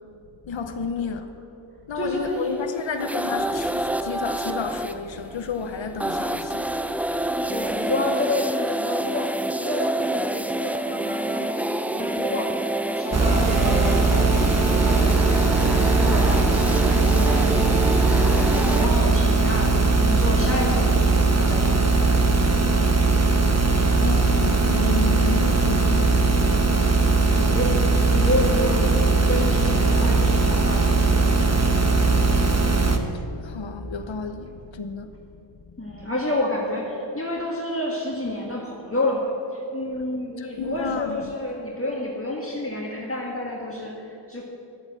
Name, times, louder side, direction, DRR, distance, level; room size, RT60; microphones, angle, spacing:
voice 1, 0.4-1.3 1.9-7.3 24.0-26.4 33.4-35.1 40.4-41.2, left 5 dB, 70° left, 0.8 m, -31 dB
voice 2, 1.9-2.6 7.5-12.5 12.8-17.6 18.0-22.6 27.3-27.7 28.1-31.3 35.8-44.4, left 1 dB, 30° left, 1.6 m, -29 dB
sound 1, 2.2-18.9, right 1 dB, 5° right, 0.5 m, -28 dB
sound 2, 13.1-33.0, right 3 dB, 35° right, 1.2 m, -19 dB
11.5 x 8.8 x 7.4 m
wide cardioid pair, 40°, 47 cm